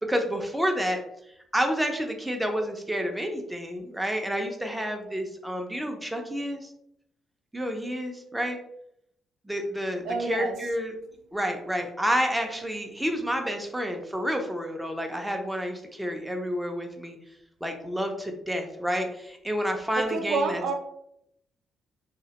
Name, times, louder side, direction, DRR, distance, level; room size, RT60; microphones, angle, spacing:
voice 1, 0.1-1.0 1.5-6.7 7.5-8.6 9.5-10.9 11.3-17.2 17.6-20.6, equal, 5° right, 3 dB, 0.4 m, -29 dB
voice 2, 10.0-10.6 19.9-20.7, right 4 dB, 75° right, 3 dB, 0.4 m, -28 dB
2.2 x 2.1 x 2.8 m, 0.77 s
cardioid pair, 90°, 0 cm